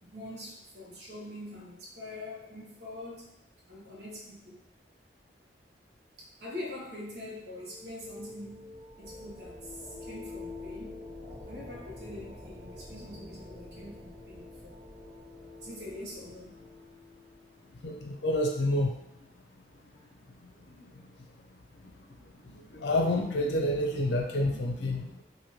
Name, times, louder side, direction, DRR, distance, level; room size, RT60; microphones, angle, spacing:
voice 1, 0.0-3.3 3.7-4.6 6.2-8.7 9.0-11.0 11.5-14.8 15.6-16.6 19.9-20.0 24.5-24.6, left 1 dB, 70° right, -5 dB, 1.1 m, -44 dB
sound 1, 7.2-17.8, left 2 dB, 50° right, 1.2 m, -47 dB
voice 2, 17.8-18.9 22.7-25.2, left 1 dB, 80° left, 2 dB, 0.5 m, -28 dB
2.9 x 2.6 x 2.9 m, 0.85 s
head